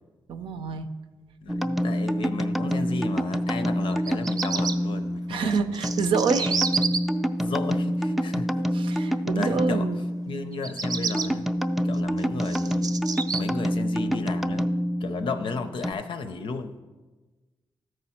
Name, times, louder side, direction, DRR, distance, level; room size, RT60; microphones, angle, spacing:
voice 1, 0.3-0.9 5.3-6.6 8.7-10.0, right 5 dB, 90° right, 9 dB, 0.6 m, -27 dB
voice 2, 1.4-5.8 7.4-8.5 9.1-9.9 10.3-11.5 11.8-13.0 13.4-14.7 15.0-16.7, left 4 dB, 80° left, 9 dB, 0.6 m, -34 dB
sound 1, 1.5-15.9, equal, ahead, 0.4 m, -27 dB
Bird vocalization bird call bird song, 3.9-4.7 5.5-7.0 10.5-11.3 11.9-13.4, right 5 dB, 45° right, 0.6 m, -29 dB
13.0 x 4.8 x 4.3 m, 1.2 s
cardioid pair, 75°, 9 cm